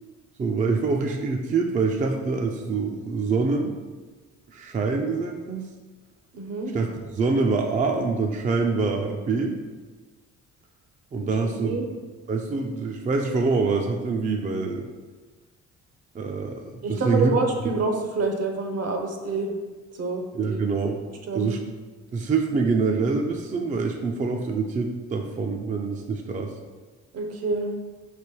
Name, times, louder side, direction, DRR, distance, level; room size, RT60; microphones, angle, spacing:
voice 1, 0.4-3.7 4.5-5.6 6.7-9.6 11.1-11.8 12.3-14.9 16.1-16.6 16.9-17.3 20.3-21.0 21.3-21.6 22.1-26.5, right 4 dB, 25° right, 2 dB, 0.4 m, -25 dB
voice 2, 6.3-6.7 11.2-11.9 16.8-19.5 19.9-20.6 21.3-21.5 27.1-27.7, right 3 dB, 55° right, 3 dB, 0.8 m, -27 dB
3.3 x 3.0 x 4.4 m, 1.3 s
cardioid pair, 90°, 30 cm